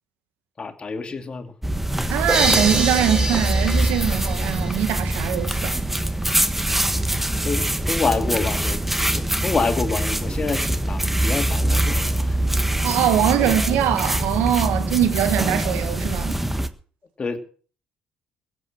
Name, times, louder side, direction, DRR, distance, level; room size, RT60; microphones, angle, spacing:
voice 1, 0.6-1.5 7.4-12.4 12.7-12.8 13.3-13.6 17.2-17.4, left 4 dB, 35° left, 2.6 m, -27 dB
sound 1, 1.6-16.7, right 1 dB, 5° right, 1.4 m, -23 dB
voice 2, 2.1-5.8 12.8-16.4, right 11 dB, 80° right, 1.7 m, -22 dB
sound 2, 2.3-5.8, right 2 dB, 25° right, 5.6 m, -26 dB
16.0 x 8.1 x 7.3 m
supercardioid pair, 70°, 3 cm